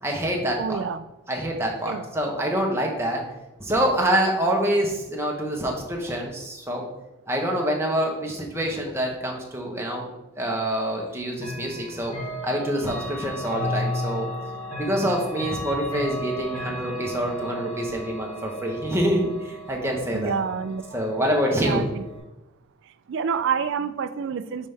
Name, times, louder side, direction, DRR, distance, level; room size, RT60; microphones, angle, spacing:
voice 1, 0.0-0.8 1.3-3.2 3.6-6.9 7.3-10.1 10.4-12.1 12.4-14.3 14.8-20.4 20.9-21.8, equal, 10° right, 0 dB, 0.9 m, -26 dB
voice 2, 0.6-1.0 1.9-2.0 20.1-21.0 21.6-22.0 23.1-24.7, right 6 dB, 55° right, 12 dB, 0.3 m, -28 dB
Chime / Clock, 11.4-22.2, equal, 70° left, 2.2 m, -34 dB
5.3 x 5.3 x 3.3 m, 0.97 s
head